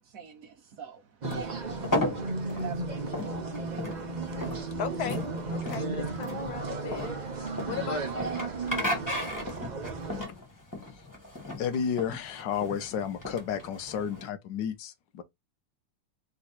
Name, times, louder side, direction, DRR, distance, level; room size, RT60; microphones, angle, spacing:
voice 1, 0.0-4.4, right 8 dB, 60° right, 1.1 m, -48 dB
sound 1, 1.2-14.3, left 1 dB, 10° left, 1.4 m, -35 dB
sound 2, 1.2-10.2, right 3 dB, 35° right, 0.7 m, -34 dB
voice 2, 4.5-5.2 5.5-7.2 7.7-9.0, left 8 dB, 70° left, 1.0 m, -38 dB
voice 3, 11.6-15.2, left 7 dB, 85° left, 1.4 m, -32 dB
3.7 x 3.1 x 4.2 m
omnidirectional pair, 1.9 m